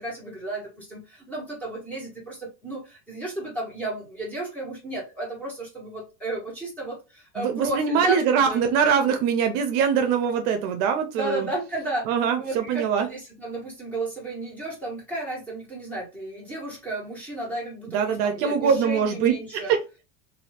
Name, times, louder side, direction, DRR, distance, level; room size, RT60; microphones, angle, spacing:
voice 1, 0.0-8.6 11.2-12.0 12.4-19.7, right 2 dB, 5° left, -5 dB, 1.5 m, -33 dB
voice 2, 7.4-11.5 12.0-13.1 17.9-19.8, right 7 dB, 60° right, 6 dB, 0.7 m, -23 dB
2.7 x 2.7 x 3.2 m, 0.29 s
supercardioid pair, 140°, 45 cm